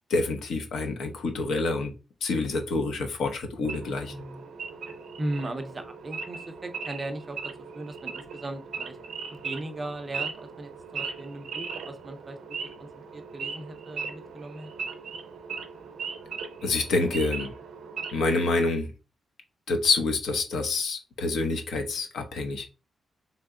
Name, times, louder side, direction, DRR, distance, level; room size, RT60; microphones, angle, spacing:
voice 1, 0.1-1.9 2.2-4.1 16.6-17.5 18.1-18.9 19.7-22.7, left 3 dB, 80° left, 5 dB, 0.8 m, -27 dB
Wild animals / Idling, 3.6-18.4, right 5 dB, 65° right, 0.6 m, -38 dB
voice 2, 4.1-4.4 5.2-9.0 9.3-12.4 12.8-14.7, right 1 dB, 20° right, 7 dB, 0.5 m, -38 dB
3.4 x 2.9 x 3.6 m, 0.30 s
wide cardioid pair, 180°, 0 cm